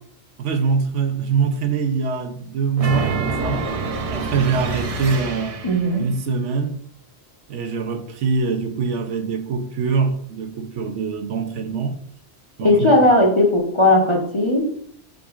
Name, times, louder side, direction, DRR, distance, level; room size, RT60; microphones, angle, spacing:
voice 1, 0.4-3.7 4.1-5.6 6.0-6.8 7.5-12.0 12.6-13.0, right 5 dB, 85° right, 0.9 m, -23 dB
sound 1, 2.8-6.0, right 3 dB, 50° right, 0.4 m, -26 dB
voice 2, 5.6-6.0 12.6-14.7, left 1 dB, 30° left, 0.7 m, -17 dB
5.9 x 3.7 x 2.3 m
omnidirectional pair, 1.2 m